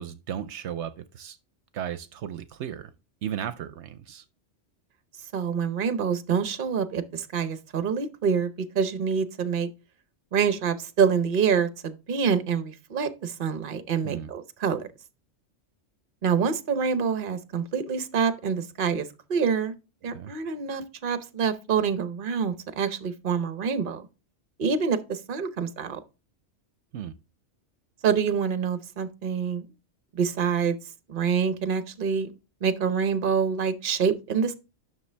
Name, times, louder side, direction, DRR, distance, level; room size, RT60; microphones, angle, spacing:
voice 1, 0.0-1.4 1.7-2.9 3.2-4.2 14.0-14.3 20.1-20.3 26.9-27.1, right 9 dB, 75° right, 0.9 m, -35 dB
voice 2, 5.3-9.7 10.3-14.9 16.2-19.7 20.0-24.1 24.6-26.0 28.0-29.7 30.1-30.8 31.1-32.3 32.6-34.5, right 6 dB, 50° right, 0.9 m, -26 dB
9.7 x 6.2 x 3.3 m
omnidirectional pair, 1.2 m